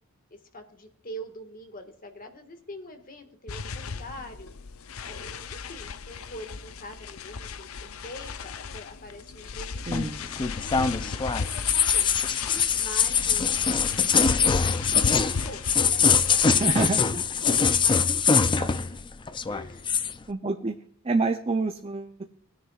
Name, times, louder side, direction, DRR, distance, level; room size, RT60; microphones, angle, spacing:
voice 1, 0.3-4.5 5.0-9.8 10.5-12.1 12.7-16.7 17.0-19.0 19.5-20.0, left 1 dB, 40° left, 5 dB, 1.7 m, -44 dB
sound 1, 3.5-16.8, left 5 dB, 80° left, 0.6 m, -36 dB
sound 2, 9.9-19.0 19.3-20.1, left 6 dB, 20° left, 0.5 m, -23 dB
voice 2, 9.9-10.3 16.5-17.0 18.6-18.7 20.3-20.8 21.0-22.2, right 3 dB, 30° right, 6 dB, 0.6 m, -27 dB
20.0 x 9.9 x 2.4 m, 0.62 s
head